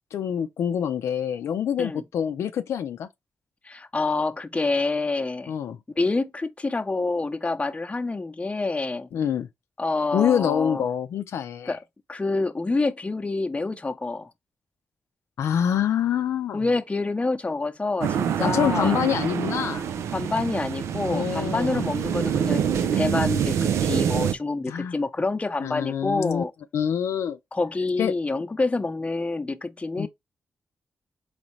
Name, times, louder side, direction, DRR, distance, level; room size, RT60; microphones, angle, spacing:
voice 1, 0.1-3.1 5.5-5.8 9.1-9.5 10.1-11.8 15.4-16.6 18.4-19.8 21.1-21.8 24.7-25.0 25.6-26.4 26.7-27.4 28.0-28.1 30.0-30.1, left 9 dB, 85° left, 0.4 m, -26 dB
voice 2, 3.6-5.5 6.0-9.1 9.8-10.8 11.7-11.8 12.1-14.3 16.5-19.0 20.1-26.5 27.5-30.1, left 3 dB, 30° left, 0.7 m, -27 dB
sound 1, 18.0-24.3, right 8 dB, 90° right, 0.4 m, -26 dB
3.9 x 3.2 x 3.1 m
cardioid pair, 50°, 5 cm